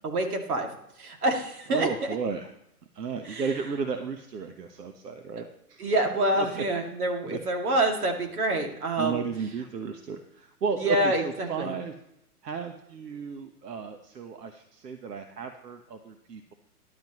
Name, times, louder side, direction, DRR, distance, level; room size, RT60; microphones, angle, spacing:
voice 1, 0.0-0.7 1.0-2.2 3.2-3.5 5.8-9.2 10.8-11.7, right 1 dB, 65° right, 3 dB, 2.6 m, -27 dB
voice 2, 1.7-2.5 2.9-5.9 6.4-6.6 7.3-7.4 9.0-11.9 12.4-16.5, right 5 dB, 85° right, 6 dB, 1.3 m, -34 dB
13.5 x 11.5 x 3.1 m, 0.81 s
hypercardioid pair, 165°, 47 cm